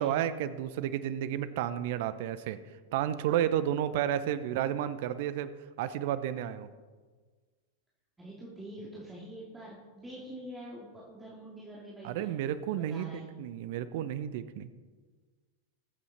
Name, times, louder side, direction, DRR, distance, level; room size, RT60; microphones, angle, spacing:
voice 1, 0.0-2.6 2.9-5.5 5.8-6.7 12.0-14.7, right 10 dB, 50° right, 14 dB, 0.7 m, -31 dB
voice 2, 8.2-12.3 12.7-13.3, right 1 dB, 10° right, -6 dB, 2.8 m, -45 dB
21.0 x 8.4 x 4.1 m, 1.5 s
figure-of-eight pair, 90°, 0 cm